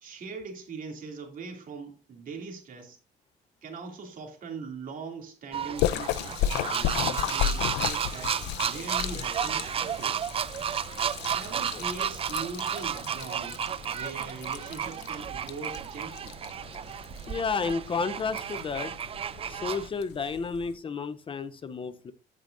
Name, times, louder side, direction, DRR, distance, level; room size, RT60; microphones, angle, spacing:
voice 1, 0.0-3.0 3.6-10.2 11.3-16.4, right 4 dB, 55° right, 3 dB, 2.6 m, -41 dB
sound 1, 5.5-19.9, right 8 dB, 35° right, 0.4 m, -33 dB
Splash splatter, 5.8-20.8, left 12 dB, 90° left, 0.5 m, -35 dB
voice 2, 17.3-18.9 19.5-22.1, left 5 dB, 30° left, 13 dB, 0.6 m, -31 dB
14.5 x 5.3 x 2.5 m, 0.33 s
cardioid pair, 110°, 17 cm